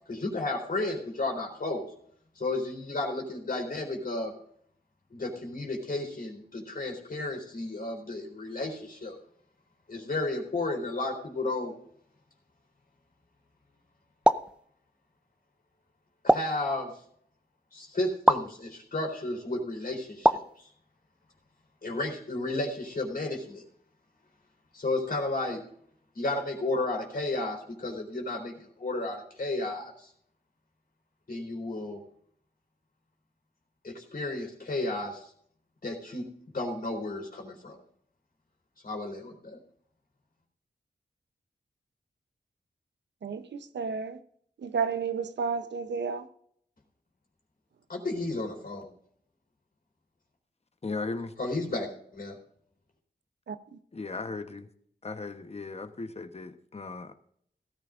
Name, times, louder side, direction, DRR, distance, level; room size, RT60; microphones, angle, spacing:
voice 1, 0.1-1.9 2.4-4.3 5.1-9.2 9.9-11.7 16.2-16.9 17.7-20.7 21.8-23.6 24.7-25.6 26.2-30.1 31.3-32.0 33.8-35.3 35.8-36.2 36.5-37.8 38.8-39.6 47.9-48.9 51.4-52.4, left 2 dB, 55° left, 3.7 m, -33 dB
sound 1, 14.2-14.6 16.3-16.6 18.3-18.5 20.2-20.6, right 1 dB, 5° right, 0.5 m, -22 dB
voice 2, 43.7-44.2 44.6-46.2 53.5-53.6, right 5 dB, 85° right, 0.8 m, -31 dB
voice 3, 50.8-51.3 53.9-54.7 55.0-57.1, left 3 dB, 35° left, 1.0 m, -37 dB
17.0 x 14.0 x 2.6 m
cardioid pair, 65°, 18 cm